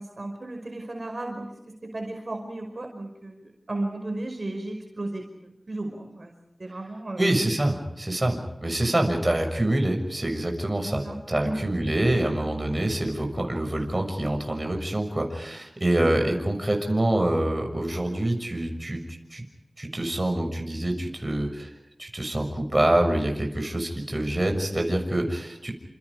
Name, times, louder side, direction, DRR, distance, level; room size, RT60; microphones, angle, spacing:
voice 1, 0.0-5.2 5.7-6.3 6.6-7.3 11.0-11.2 11.4-11.6, right 2 dB, 55° right, 3 dB, 5.2 m, -34 dB
voice 2, 7.2-19.0 19.3-19.4 19.8-21.7 22.0-25.7, right 1 dB, 30° right, 3 dB, 6.6 m, -26 dB
30.0 x 28.0 x 5.0 m, 0.84 s
wide cardioid pair, 65°, 0 cm